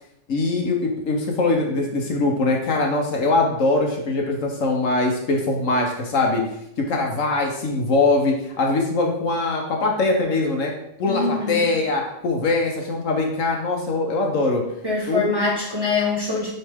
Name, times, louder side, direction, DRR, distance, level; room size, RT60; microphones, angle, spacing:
voice 1, 0.3-6.4 6.8-10.7 11.0-14.6 15.1-15.5, left 3 dB, 65° left, 1 dB, 1.3 m, -22 dB
voice 2, 11.1-11.7 14.8-16.5, left 4 dB, 20° right, -6 dB, 1.2 m, -24 dB
8.6 x 3.3 x 3.5 m, 0.79 s
omnidirectional pair, 1.4 m